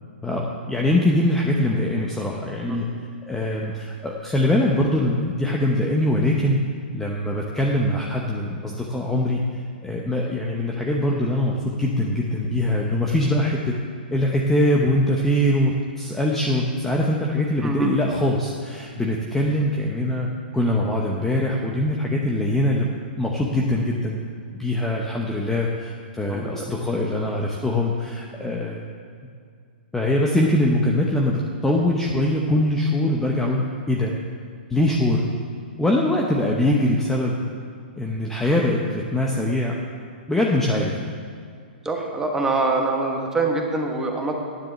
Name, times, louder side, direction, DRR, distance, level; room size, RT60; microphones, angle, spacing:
voice 1, 0.2-2.9 3.3-6.6 6.9-9.4 9.8-13.7 14.1-20.3 20.5-22.9 23.2-24.2 24.5-28.8 29.9-34.1 34.7-35.2 35.8-37.4 38.0-39.7 40.3-41.0, left 1 dB, 5° left, -1 dB, 0.8 m, -22 dB
voice 2, 17.6-17.9 26.3-26.7 41.8-44.3, right 3 dB, 10° right, 1 dB, 1.3 m, -24 dB
9.7 x 7.5 x 7.4 m, 2.2 s
hypercardioid pair, 140°, 6 cm